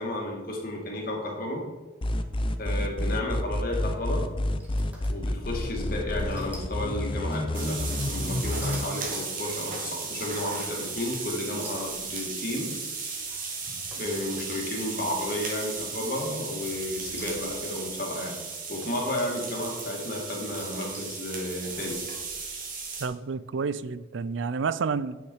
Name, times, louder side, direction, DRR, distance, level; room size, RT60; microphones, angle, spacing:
voice 1, 0.0-1.6 2.6-4.3 5.1-12.7 13.3-13.4 13.9-18.4 18.7-22.0, left 1 dB, 55° left, -1 dB, 2.5 m, -32 dB
sound 1, 2.0-8.8, left 1 dB, 30° left, 0.6 m, -29 dB
sound 2, 4.0-5.6 6.2-6.8 7.2-7.9 8.3-9.0 10.4-10.8 11.6-14.5 14.9-15.4 16.7-17.7 18.5-19.2 20.3-21.3, equal, 10° right, 2.0 m, -47 dB
sound 3, 7.5-23.1, right 4 dB, 45° right, 2.0 m, -36 dB
voice 2, 23.0-25.2, right 5 dB, 85° right, 16 dB, 0.4 m, -30 dB
9.6 x 6.5 x 4.8 m, 1.2 s
head